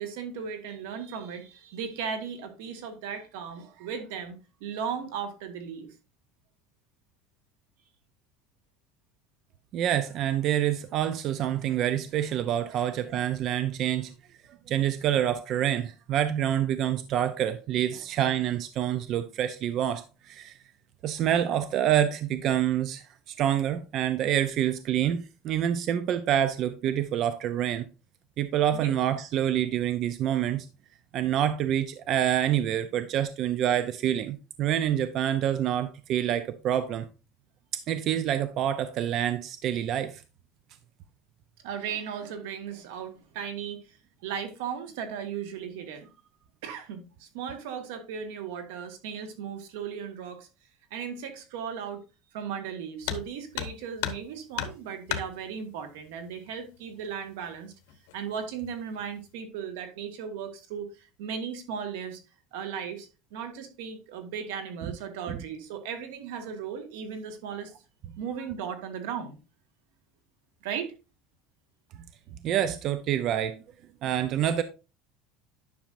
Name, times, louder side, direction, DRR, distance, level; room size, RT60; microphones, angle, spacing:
voice 1, 0.0-5.9 12.6-12.8 17.9-18.0 28.7-28.9 41.6-44.0 44.2-46.1 46.6-50.5 50.9-52.0 52.3-57.7 58.1-62.2 62.5-67.7 68.2-69.4 70.6-70.9, right 7 dB, 85° right, 1.6 m, -36 dB
voice 2, 9.7-14.1 14.7-20.6 21.0-27.9 28.4-30.7 31.1-37.1 37.7-40.2 64.9-65.0 65.3-65.4 72.4-73.6 74.0-74.6, right 10 dB, 40° right, 0.5 m, -27 dB
sound 1, 53.0-53.3 53.5-54.3 54.5-55.3 56.5-56.6 57.0-57.1 57.9-58.3 58.6-59.0, left 11 dB, 90° left, 1.0 m, -33 dB
10.0 x 6.2 x 2.6 m
cardioid pair, 160°, 0 cm